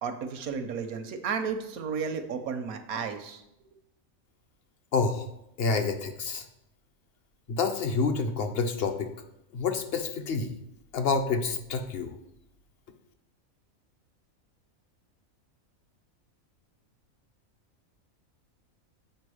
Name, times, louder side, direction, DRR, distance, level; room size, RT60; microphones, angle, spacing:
voice 1, 0.0-3.4, right 6 dB, 90° right, 8 dB, 1.2 m, -33 dB
voice 2, 4.9-5.3 5.6-6.5 7.5-9.1 9.5-10.5 10.9-12.1, left 4 dB, 55° left, 6 dB, 0.8 m, -28 dB
7.8 x 4.6 x 4.9 m, 0.83 s
omnidirectional pair, 1.5 m